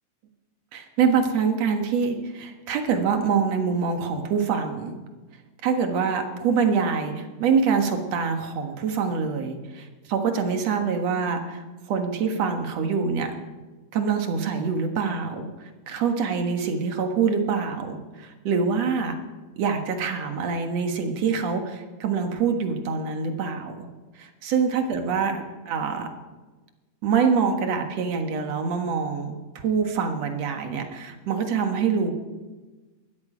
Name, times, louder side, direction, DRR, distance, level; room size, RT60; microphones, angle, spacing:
voice 1, 0.7-5.0 5.6-13.3 13.9-19.2 19.6-23.9 24.2-26.1 27.0-32.1, right 5 dB, 60° right, 5 dB, 2.5 m, -25 dB
19.5 x 13.0 x 5.1 m, 1.2 s
omnidirectional pair, 3.6 m